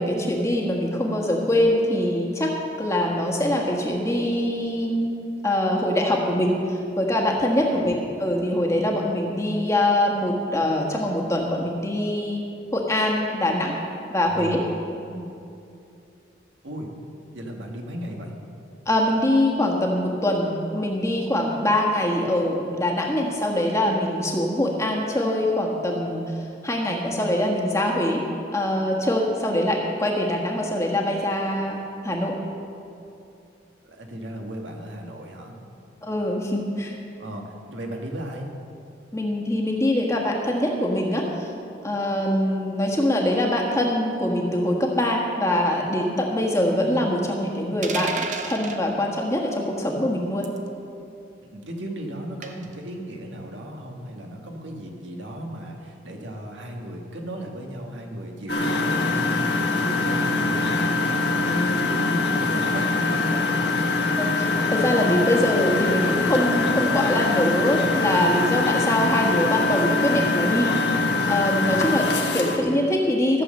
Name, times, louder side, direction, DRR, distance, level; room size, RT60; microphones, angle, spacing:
voice 1, 0.0-5.1 5.4-12.4 12.7-13.7 14.1-14.6 18.9-26.3 26.6-28.2 28.5-31.8 32.0-32.4 36.0-36.9 39.1-41.5 41.8-50.5 64.2-73.4, left 1 dB, 15° left, -1 dB, 1.4 m, -23 dB
voice 2, 7.6-7.9 14.2-14.8 16.6-16.9 17.3-18.4 33.8-35.5 37.2-38.5 51.5-60.7 61.3-63.5 71.6-71.8, right 1 dB, 80° right, 1 dB, 1.6 m, -35 dB
sound 1, 47.8-48.8 50.4-50.7 52.4-52.7, right 4 dB, 40° right, 0.8 m, -31 dB
Engine, 58.5-72.6, left 3 dB, 65° left, 1.4 m, -23 dB
14.5 x 7.6 x 6.5 m, 2.7 s
head